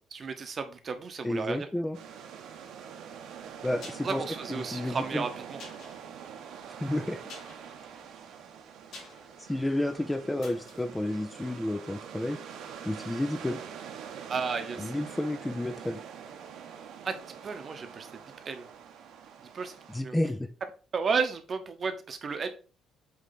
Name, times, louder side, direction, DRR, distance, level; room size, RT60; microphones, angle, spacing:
voice 1, 0.1-1.7 4.0-5.6 14.3-14.9 17.0-17.2 17.4-18.2 18.5-18.7 19.4-20.2 20.9-22.5, right 5 dB, 35° right, 0.8 m, -33 dB
voice 2, 1.2-2.0 3.6-4.2 4.5-5.2 6.8-7.2 9.4-12.4 12.8-13.6 14.8-16.0 19.9-20.5, left 1 dB, 10° left, 0.4 m, -31 dB
sound 1, 1.9-20.0, right 7 dB, 80° right, 1.1 m, -45 dB
sound 2, 3.4-12.3 12.6-12.7, left 3 dB, 70° left, 3.5 m, -52 dB
8.2 x 3.2 x 4.0 m
cardioid pair, 165°, 0 cm